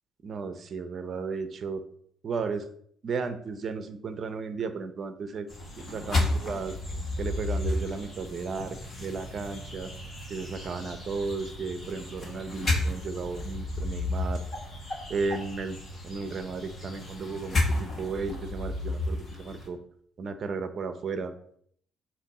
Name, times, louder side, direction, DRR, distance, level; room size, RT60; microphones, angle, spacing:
voice 1, 0.2-1.8 2.2-2.7 3.0-5.5 5.9-6.8 7.2-9.9 10.3-14.4 15.1-15.8 16.0-19.8 20.2-21.3, right 4 dB, 40° right, 9 dB, 0.7 m, -34 dB
sound 1, 5.5-19.7, left 2 dB, 30° left, 1.6 m, -33 dB
8.2 x 3.1 x 6.0 m, 0.65 s
cardioid pair, 140°, 0 cm